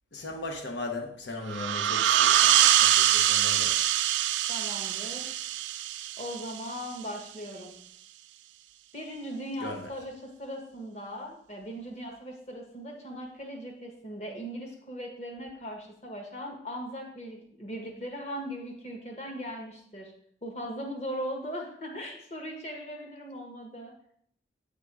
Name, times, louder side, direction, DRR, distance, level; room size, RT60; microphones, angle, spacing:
voice 1, 0.1-3.9 9.6-9.9, left 2 dB, 80° left, 0.8 m, -38 dB
sound 1, 1.5-6.8, right 12 dB, 85° right, 0.3 m, -24 dB
voice 2, 4.5-5.4 6.2-7.8 8.9-20.1 20.4-23.9, equal, 35° left, 1.2 m, -39 dB
8.3 x 3.7 x 4.7 m
head